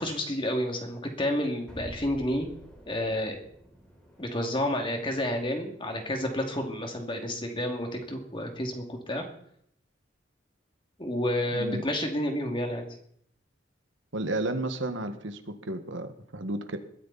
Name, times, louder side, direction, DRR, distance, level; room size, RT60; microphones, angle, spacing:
voice 1, 0.0-2.5 2.9-3.4 4.2-9.3 11.0-12.9, left 1 dB, 25° left, 3 dB, 2.7 m, -30 dB
sound 1, 1.7-6.8, equal, 5° left, 4.3 m, -50 dB
voice 2, 14.1-16.8, right 1 dB, 85° right, 7 dB, 1.8 m, -32 dB
21.0 x 14.5 x 4.2 m, 0.68 s
head